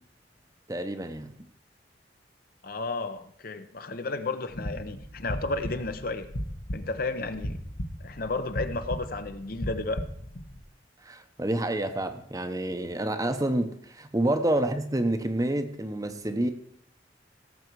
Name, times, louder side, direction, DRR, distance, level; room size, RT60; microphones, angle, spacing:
voice 1, 0.7-1.3 11.0-16.5, right 1 dB, 20° right, 8 dB, 0.8 m, -28 dB
voice 2, 2.6-6.3 6.7-7.6 8.0-10.1, left 3 dB, 55° left, 10 dB, 0.8 m, -32 dB
sound 1, 4.5-10.6, equal, 80° left, 1.6 m, -37 dB
17.5 x 7.1 x 4.7 m, 0.69 s
head